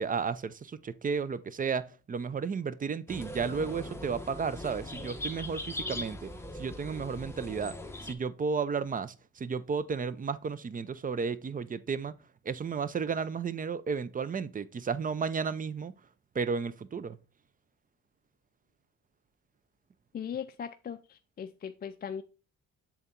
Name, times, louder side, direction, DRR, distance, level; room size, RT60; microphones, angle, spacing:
voice 1, 0.0-6.3 6.5-7.7 8.0-12.1 12.4-15.9 16.3-17.2, right 5 dB, 30° right, 0.5 m, -33 dB
sound 1, 3.1-8.1, left 1 dB, 10° left, 1.1 m, -40 dB
voice 2, 20.1-22.2, left 8 dB, 30° left, 0.4 m, -39 dB
7.1 x 4.1 x 3.7 m
cardioid pair, 90°, 30 cm